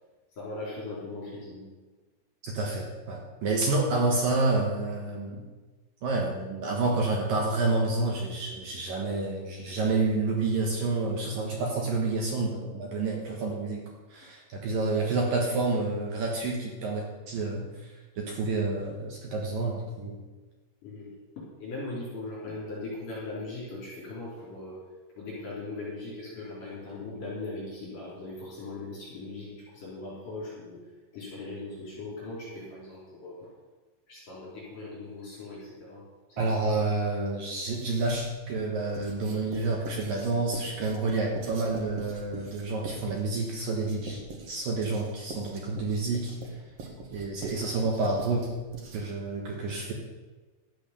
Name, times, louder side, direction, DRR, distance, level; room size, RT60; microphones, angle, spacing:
voice 1, 0.3-1.7 20.8-21.1 21.4-24.8 25.2-30.8 31.1-33.5 34.1-36.0 36.3-36.5, left 2 dB, 45° left, -7 dB, 5.5 m, -39 dB
voice 2, 2.4-5.4 6.0-13.8 14.1-20.2 36.4-44.2 44.5-46.4 47.1-48.4 48.9-49.9, right 3 dB, 65° right, -1 dB, 2.3 m, -29 dB
Writing, 37.6-38.3 38.9-49.3, right 2 dB, 90° right, 1.3 m, -44 dB
12.5 x 8.5 x 6.9 m, 1.2 s
omnidirectional pair, 5.8 m